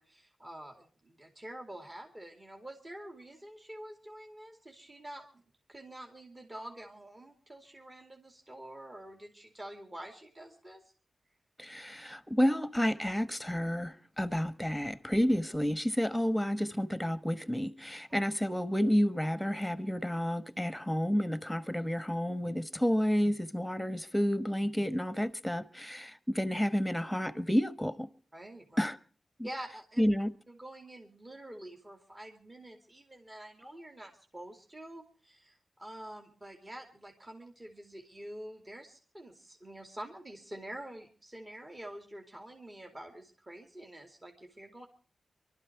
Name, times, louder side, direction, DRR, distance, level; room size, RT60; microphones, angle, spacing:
voice 1, 0.0-5.4 5.7-10.8 28.3-28.8 29.4-30.0 30.5-44.9, right 1 dB, 30° right, 2.5 m, -47 dB
voice 2, 11.6-28.1 28.8-29.0 30.0-30.3, equal, ahead, 1.2 m, -30 dB
23.5 x 13.0 x 4.6 m
cardioid pair, 70°, 0 cm